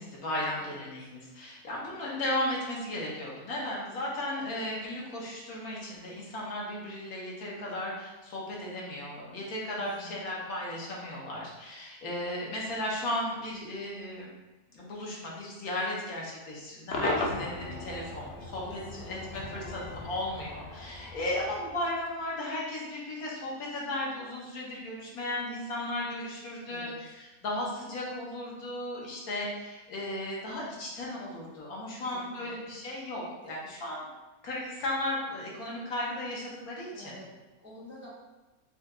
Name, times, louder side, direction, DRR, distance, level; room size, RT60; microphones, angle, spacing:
voice 1, 0.0-14.3 14.7-34.1 34.4-37.2, left 1 dB, 85° left, -4 dB, 1.4 m, -35 dB
voice 2, 0.5-1.1 9.8-10.5 18.6-20.1 26.7-27.0 32.1-32.7 36.9-38.1, left 1 dB, 10° right, -6 dB, 0.6 m, -50 dB
Cheering / Crowd / Fireworks, 16.9-22.2, left 2 dB, 65° left, 0.7 m, -37 dB
4.4 x 2.3 x 3.6 m, 1.1 s
omnidirectional pair, 1.5 m